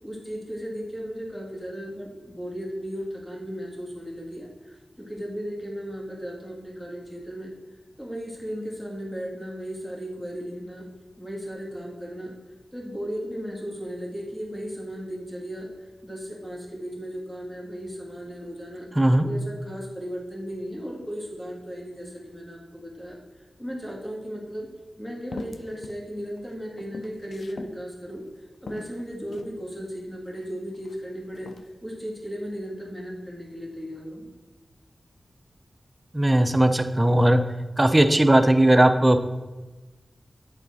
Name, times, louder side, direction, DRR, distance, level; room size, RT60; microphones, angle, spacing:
voice 1, 0.0-7.5 8.0-10.9 11.2-12.3 12.7-18.9 19.2-24.7 25.0-28.2 28.6-31.5 31.8-34.3, equal, 10° left, -2 dB, 1.9 m, -36 dB
sound 1, 24.5-24.6 25.3-26.0 26.4-27.8 28.2-28.3 28.7-29.6 30.3-31.0 31.3-31.7, left 3 dB, 90° left, 0.4 m, -41 dB
voice 2, 36.1-37.4 37.8-39.2, right 1 dB, 25° right, 8 dB, 0.5 m, -18 dB
8.3 x 4.1 x 4.1 m, 1.2 s
cardioid pair, 55°, 0 cm